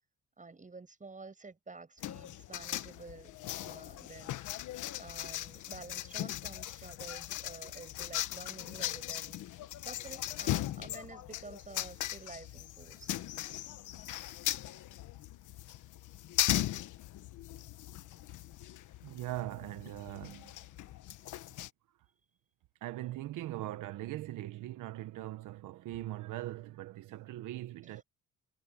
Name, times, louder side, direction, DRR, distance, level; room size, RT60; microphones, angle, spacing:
voice 1, 0.4-3.4 3.6-4.5 5.0-9.5 9.8-13.2 27.8-28.0, right 3 dB, 25° right, 8.0 m, -50 dB
sound 1, 2.0-21.7, left 13 dB, 80° left, 1.4 m, -39 dB
voice 2, 19.0-20.6 22.8-28.0, right 15 dB, 85° right, 1.2 m, -41 dB
cardioid pair, 90°, 30 cm